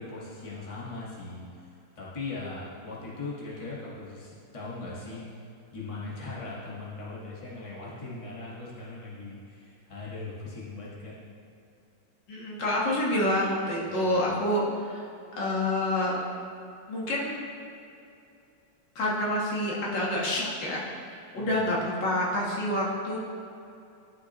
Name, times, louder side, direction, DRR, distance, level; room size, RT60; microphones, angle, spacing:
voice 1, 0.0-5.2 5.7-11.2 13.8-14.4 21.3-21.7, left 3 dB, 20° left, -6 dB, 1.3 m, -40 dB
voice 2, 12.3-14.6 14.9-15.0 15.4-16.2 16.9-17.4 19.0-20.8 21.3-23.2, left 1 dB, 85° left, -4 dB, 2.1 m, -27 dB
11.5 x 5.9 x 3.0 m, 2.6 s
omnidirectional pair, 1.9 m